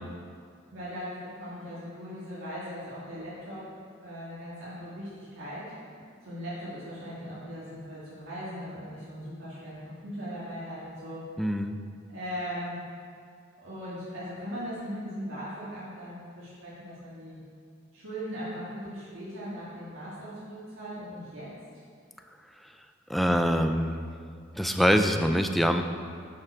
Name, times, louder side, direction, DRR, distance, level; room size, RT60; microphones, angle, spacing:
voice 1, 0.7-3.7 4.0-5.6 6.2-11.2 12.1-12.8 13.6-17.4 17.9-21.5, equal, 70° right, -10 dB, 1.9 m, -39 dB
voice 2, 11.4-11.8 23.1-24.1 24.6-25.8, equal, ahead, 6 dB, 0.3 m, -24 dB
8.6 x 5.8 x 4.6 m, 2.3 s
head